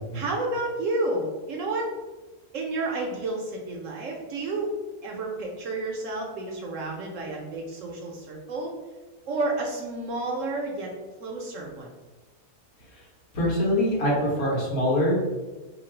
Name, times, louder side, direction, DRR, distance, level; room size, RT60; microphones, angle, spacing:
voice 1, 0.1-1.9 2.5-4.7 5.0-8.7 9.3-10.9 11.2-11.9, right 2 dB, 65° right, 0 dB, 0.9 m, -30 dB
voice 2, 13.3-15.2, left 1 dB, 70° left, -5 dB, 1.6 m, -24 dB
3.2 x 2.3 x 4.3 m, 1.2 s
omnidirectional pair, 1.6 m